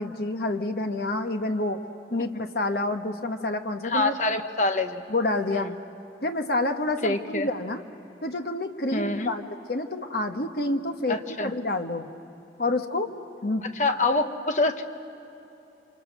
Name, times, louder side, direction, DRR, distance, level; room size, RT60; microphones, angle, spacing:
voice 1, 0.0-1.8 2.1-4.1 5.1-5.7 6.2-7.8 8.2-12.1 12.6-13.1 13.4-13.7, left 2 dB, 60° left, 5 dB, 1.3 m, -28 dB
voice 2, 3.8-5.0 5.5-5.7 7.0-7.5 8.9-9.3 11.1-11.5 13.7-14.8, left 2 dB, 40° left, 7 dB, 1.2 m, -26 dB
29.5 x 25.5 x 6.7 m, 3.0 s
head